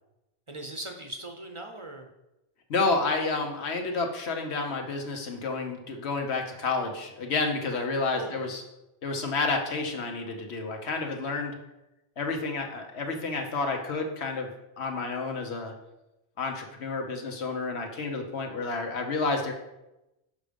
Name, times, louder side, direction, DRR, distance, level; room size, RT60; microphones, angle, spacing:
voice 1, 0.5-2.1 7.7-7.8 8.1-8.5, right 1 dB, 35° right, 4 dB, 0.6 m, -40 dB
voice 2, 2.7-8.6 9.0-11.5 12.2-14.5 14.8-15.7 16.4-19.5, left 3 dB, 85° left, 3 dB, 1.3 m, -30 dB
6.5 x 5.0 x 5.2 m, 0.93 s
omnidirectional pair, 1.1 m